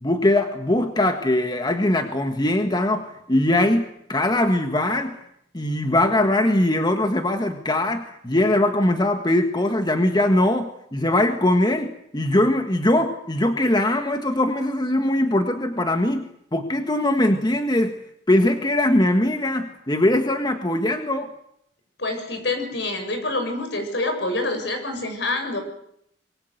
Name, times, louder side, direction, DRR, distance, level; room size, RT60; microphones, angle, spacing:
voice 1, 0.0-5.2 5.5-18.0 18.3-21.3, left 1 dB, 25° left, 6 dB, 1.6 m, -21 dB
voice 2, 22.0-25.6, left 2 dB, 70° left, 7 dB, 7.2 m, -26 dB
25.5 x 23.5 x 8.0 m, 0.74 s
head